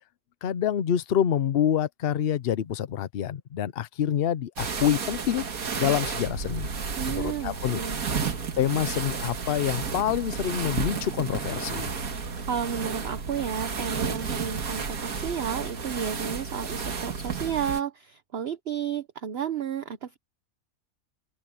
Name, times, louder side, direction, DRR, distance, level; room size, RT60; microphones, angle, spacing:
voice 1, 0.4-5.4 5.8-6.7 7.1-7.8 8.6-11.9, left 10 dB, 50° left, 0.8 m, -27 dB
sound 1, 4.6-17.8, right 5 dB, 80° right, 2.1 m, -32 dB
voice 2, 7.0-8.0 12.5-20.2, right 8 dB, 50° right, 1.1 m, -32 dB
open air
omnidirectional pair, 1.5 m